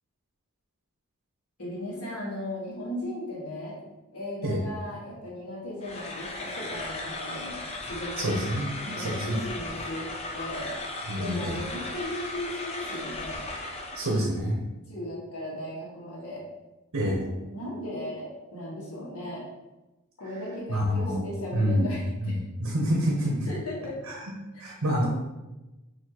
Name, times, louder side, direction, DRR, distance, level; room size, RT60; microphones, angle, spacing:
voice 1, 1.6-3.8 4.1-7.6 7.9-8.4 8.8-10.7 11.2-13.4 14.9-16.4 17.0-17.2 17.5-19.4 20.2-22.4 23.5-24.0, left 1 dB, 85° left, -5 dB, 1.4 m, -36 dB
sound 1, 5.8-14.2, left 2 dB, 30° left, 0.4 m, -36 dB
voice 2, 8.2-8.7 9.0-9.4 11.1-11.6 13.9-14.6 16.9-17.2 20.7-21.2 21.5-21.9 22.2-23.5 24.1-24.2 24.6-25.1, equal, 85° right, -2 dB, 0.8 m, -27 dB
6.1 x 2.7 x 2.9 m, 1.1 s
head